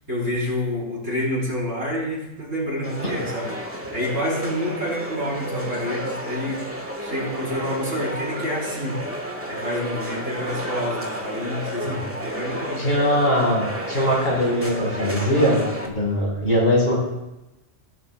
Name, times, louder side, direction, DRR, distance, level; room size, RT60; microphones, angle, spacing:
voice 1, 0.1-6.6 7.0-9.0 9.5-12.9, left 1 dB, 80° right, -5 dB, 4.7 m, -28 dB
sound 1, 2.8-15.9, equal, 10° right, 1.4 m, -31 dB
voice 2, 12.8-15.6 15.8-16.9, equal, 50° left, -4 dB, 5.0 m, -21 dB
18.0 x 11.5 x 2.4 m, 0.97 s
omnidirectional pair, 1.3 m